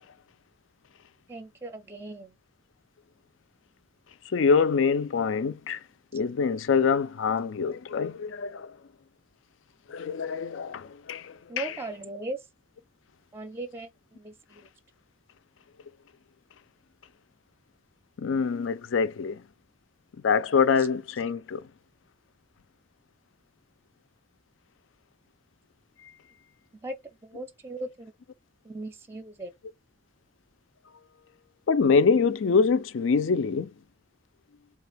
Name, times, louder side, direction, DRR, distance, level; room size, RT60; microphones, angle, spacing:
voice 1, 1.3-2.4 6.1-6.2 11.5-12.5 13.3-14.7 20.8-20.9 26.8-27.0 27.2-28.1 28.6-29.5, right 2 dB, 15° right, 0.5 m, -38 dB
voice 2, 4.3-5.8 6.1-8.7 9.9-11.7 18.2-19.4 20.2-21.6 31.7-33.7, left 5 dB, 85° left, 0.4 m, -25 dB
3.7 x 2.4 x 3.4 m
head